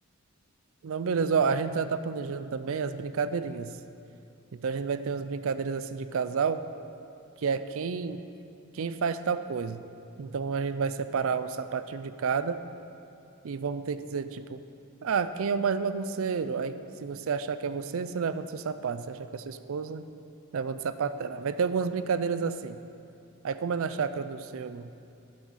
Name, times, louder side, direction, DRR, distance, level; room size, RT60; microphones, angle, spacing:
voice 1, 0.8-3.7 4.6-6.6 7.4-8.3 8.7-9.8 10.2-12.6 13.4-14.6 15.0-16.7 17.0-20.0 20.5-22.8 23.4-24.9, right 5 dB, 65° right, 12 dB, 0.4 m, -30 dB
11.5 x 7.6 x 4.1 m, 2.6 s
head